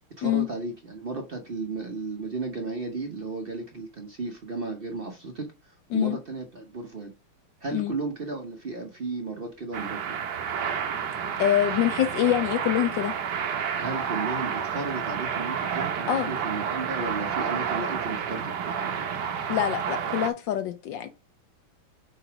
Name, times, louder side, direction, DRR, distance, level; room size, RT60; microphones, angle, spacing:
voice 1, 0.2-7.1 7.6-10.2 13.8-19.1, right 3 dB, 85° right, 0.5 m, -34 dB
sound 1, 9.7-20.3, right 7 dB, 60° right, 1.2 m, -30 dB
voice 2, 11.4-13.1 16.1-16.3 19.5-21.1, left 12 dB, 70° left, 1.1 m, -25 dB
5.0 x 4.0 x 5.7 m
omnidirectional pair, 2.4 m